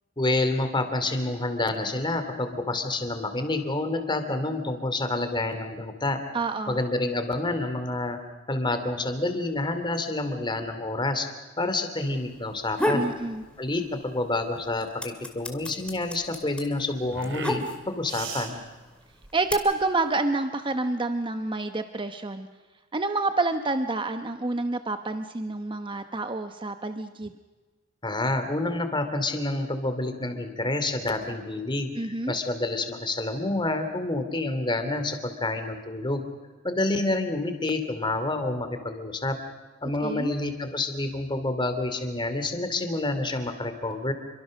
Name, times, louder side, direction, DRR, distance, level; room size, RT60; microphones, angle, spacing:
voice 1, 0.2-6.2 6.7-8.2 8.5-11.3 11.6-13.1 13.6-18.6 28.0-36.2 36.6-39.4 39.8-44.1, left 2 dB, 25° left, 8 dB, 2.8 m, -28 dB
voice 2, 6.3-6.8 12.9-13.4 19.3-22.5 22.9-27.3 32.0-32.4 40.0-40.3, right 2 dB, 25° right, 8 dB, 1.0 m, -28 dB
sound 1, 12.1-20.1, right 5 dB, 70° right, 3.2 m, -42 dB
sound 2, 12.5-13.2 13.6-14.3 14.5-18.1 18.9-19.5, left 1 dB, 5° left, 2.5 m, -29 dB
28.0 x 24.0 x 6.5 m, 1.3 s
head